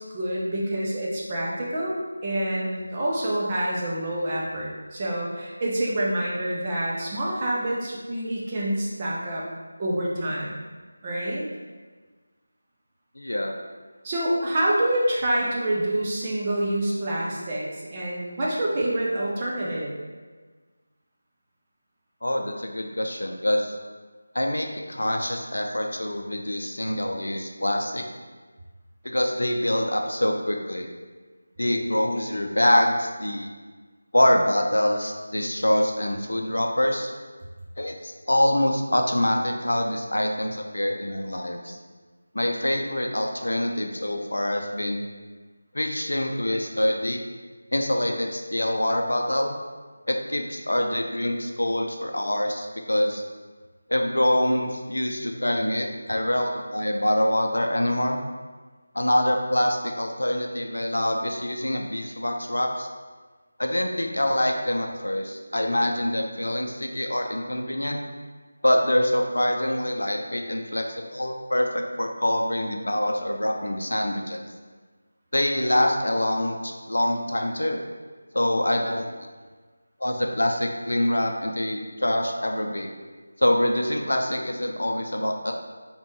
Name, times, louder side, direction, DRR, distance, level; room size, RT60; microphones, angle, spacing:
voice 1, 0.0-1.9 2.2-9.5 9.8-10.6 11.0-11.5 14.0-19.9, right 1 dB, 20° right, -5 dB, 0.7 m, -27 dB
voice 2, 13.2-13.5 22.2-23.8 24.3-28.1 29.0-30.9 31.6-33.5 34.1-37.1 37.8-41.8 42.3-45.0 45.7-47.2 47.7-49.6 50.1-53.2 53.9-58.2 58.9-62.9 63.6-68.0 68.6-74.5 75.3-77.8 78.3-79.1 80.0-82.9 83.4-85.5, left 1 dB, 65° left, 2 dB, 0.5 m, -25 dB
4.1 x 3.5 x 3.0 m, 1.4 s
figure-of-eight pair, 165°, 0 cm